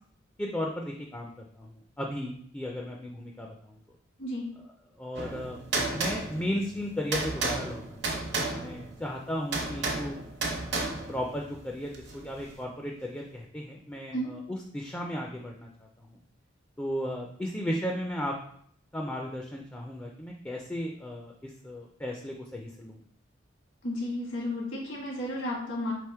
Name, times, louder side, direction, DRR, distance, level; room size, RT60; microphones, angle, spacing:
voice 1, 0.4-3.8 5.0-5.6 5.9-8.2 8.6-10.2 10.7-15.7 16.0-16.1 16.8-18.3 18.9-23.0, equal, 10° left, 0 dB, 0.4 m, -35 dB
voice 2, 4.2-4.5 14.1-14.3 23.8-25.9, left 1 dB, 75° left, -4 dB, 1.4 m, -33 dB
sound 1, 5.1-12.6, right 3 dB, 60° right, 0.8 m, -33 dB
3.5 x 2.9 x 4.4 m, 0.63 s
head